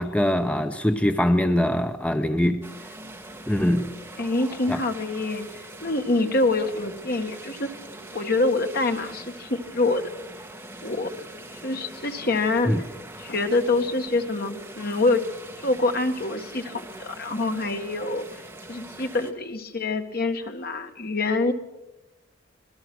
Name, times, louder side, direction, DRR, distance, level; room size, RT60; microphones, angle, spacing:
voice 1, 0.0-2.7 3.5-3.9 4.7-4.8 12.7-12.8, left 1 dB, 5° left, 7 dB, 0.8 m, -23 dB
sound 1, 2.6-19.3, right 2 dB, 10° right, 1.8 m, -42 dB
voice 2, 4.2-5.5 5.8-7.7 8.1-10.1 10.8-11.3 11.6-12.7 13.2-15.2 15.6-18.4 18.7-21.5, left 2 dB, 50° left, 5 dB, 1.8 m, -25 dB
25.5 x 18.5 x 6.3 m, 0.97 s
head